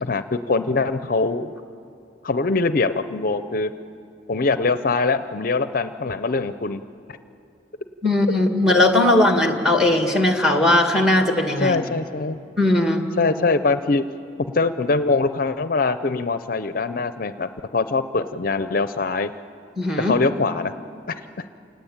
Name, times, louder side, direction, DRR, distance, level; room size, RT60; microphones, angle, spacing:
voice 1, 0.0-1.5 2.2-3.7 4.3-6.8 11.6-12.4 13.2-14.0 14.4-19.3 20.0-20.7 21.1-21.4, left 3 dB, 50° left, 11 dB, 0.6 m, -23 dB
voice 2, 8.0-11.8 12.6-13.0 19.8-20.2, left 1 dB, 5° right, 4 dB, 2.0 m, -18 dB
28.0 x 19.0 x 8.8 m, 2.6 s
head